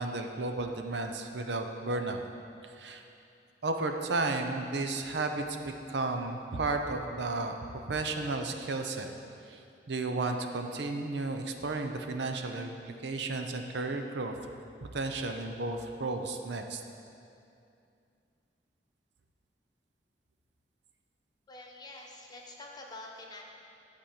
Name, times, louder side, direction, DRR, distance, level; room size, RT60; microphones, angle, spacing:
voice 1, 0.0-2.2 2.8-3.0 3.6-9.1 9.5-9.6 9.9-12.7 13.0-14.4 14.9-16.8, right 3 dB, 75° right, 5 dB, 0.7 m, -33 dB
voice 2, 21.5-23.4, left 2 dB, 25° left, 0 dB, 1.2 m, -46 dB
11.5 x 4.2 x 7.4 m, 2.5 s
head